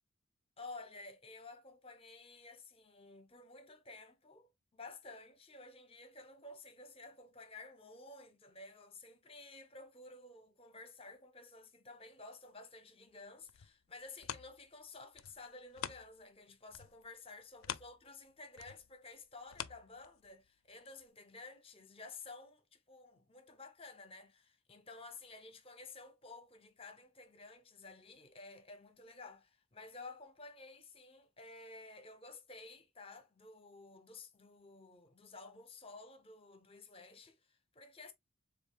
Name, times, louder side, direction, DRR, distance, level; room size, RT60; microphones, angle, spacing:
voice 1, 0.6-38.1, left 3 dB, 30° left, 0.7 m, -53 dB
sound 1, 13.4-16.4 16.7-20.5 21.0-21.1, left 10 dB, 75° left, 0.4 m, -47 dB
6.8 x 2.4 x 2.3 m
head